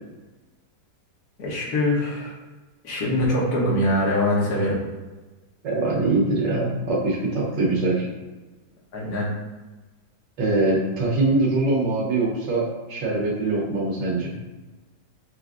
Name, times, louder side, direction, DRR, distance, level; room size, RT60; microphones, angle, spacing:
voice 1, 1.4-2.3 2.8-4.8 8.9-9.3, left 1 dB, 65° left, -5 dB, 1.4 m, -23 dB
voice 2, 5.6-8.1 10.4-14.4, right 2 dB, 90° right, -3 dB, 1.6 m, -23 dB
5.7 x 2.5 x 2.4 m, 1.2 s
omnidirectional pair, 1.9 m